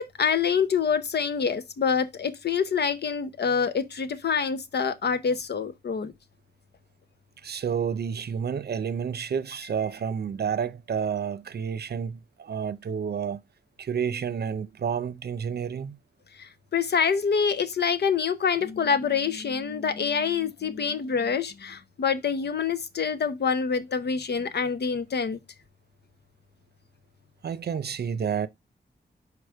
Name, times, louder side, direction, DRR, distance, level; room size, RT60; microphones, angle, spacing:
voice 1, 0.0-6.1 16.7-25.4, left 6 dB, 85° left, 0.8 m, -26 dB
voice 2, 7.4-13.4 13.8-16.0 27.4-28.5, right 7 dB, 75° right, 0.6 m, -30 dB
5.0 x 4.8 x 4.6 m
wide cardioid pair, 100°, 17 cm